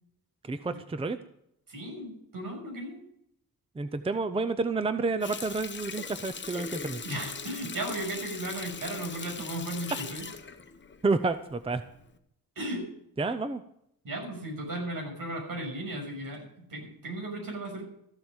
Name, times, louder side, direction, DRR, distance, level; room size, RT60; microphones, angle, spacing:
voice 1, 0.4-1.2 3.8-7.0 11.0-11.8 13.2-13.6, right 3 dB, 15° right, 11 dB, 0.6 m, -29 dB
voice 2, 1.7-3.0 7.0-10.2 12.5-12.8 14.0-17.8, right 1 dB, 70° right, 1 dB, 6.5 m, -36 dB
Water tap faucet, 5.2-11.6 12.0-12.2, left 5 dB, 30° left, 1.0 m, -40 dB
14.0 x 7.7 x 8.8 m, 0.74 s
wide cardioid pair, 135°, 35 cm